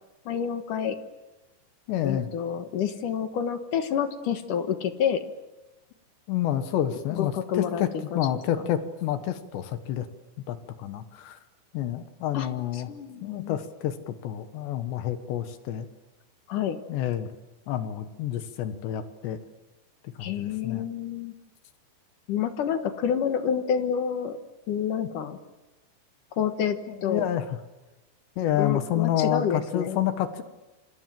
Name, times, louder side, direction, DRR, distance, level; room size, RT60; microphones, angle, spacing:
voice 1, 0.3-1.0 2.0-5.2 7.1-7.9 8.1-8.2 12.3-12.5 12.7-13.6 16.5-16.8 20.2-21.3 22.3-24.4 24.7-25.4 26.4-27.2 28.6-30.0, left 8 dB, 60° left, 9 dB, 2.5 m, -28 dB
voice 2, 1.9-2.3 6.3-10.1 10.5-11.4 11.7-12.9 13.2-15.9 16.9-17.3 17.7-19.4 20.0-20.9 26.9-27.6 28.4-30.4, left 11 dB, 80° left, 10 dB, 3.5 m, -29 dB
28.0 x 26.5 x 7.7 m, 1.0 s
omnidirectional pair, 5.0 m